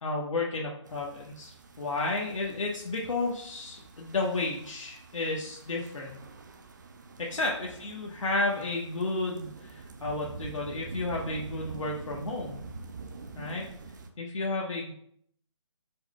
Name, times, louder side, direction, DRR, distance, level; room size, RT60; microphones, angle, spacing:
voice 1, 0.0-6.2 7.2-12.6 13.4-13.7 14.2-14.9, left 2 dB, 90° left, -3 dB, 1.1 m, -32 dB
sound 1, 0.9-14.1, right 3 dB, 40° right, 0.4 m, -46 dB
4.7 x 2.2 x 4.7 m, 0.68 s
hypercardioid pair, 165°, 16 cm